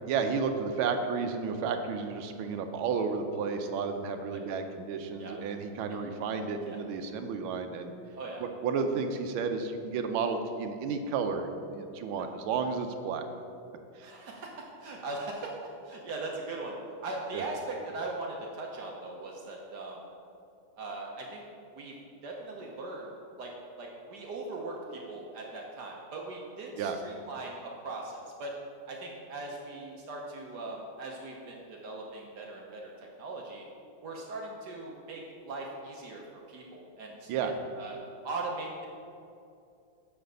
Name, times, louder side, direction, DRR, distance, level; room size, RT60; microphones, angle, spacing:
voice 1, 0.1-7.9 8.4-13.2 14.0-14.1 17.3-17.5 26.8-27.0 37.3-37.5, right 5 dB, 80° right, 6 dB, 1.4 m, -32 dB
voice 2, 14.0-15.6 15.8-20.0 20.8-21.4 21.7-21.9 22.2-23.1 23.4-23.5 23.8-28.5 28.9-33.6 34.0-38.0 38.2-38.9, right 2 dB, 60° right, -1 dB, 1.2 m, -40 dB
5.8 x 5.6 x 6.5 m, 2.6 s
omnidirectional pair, 2.3 m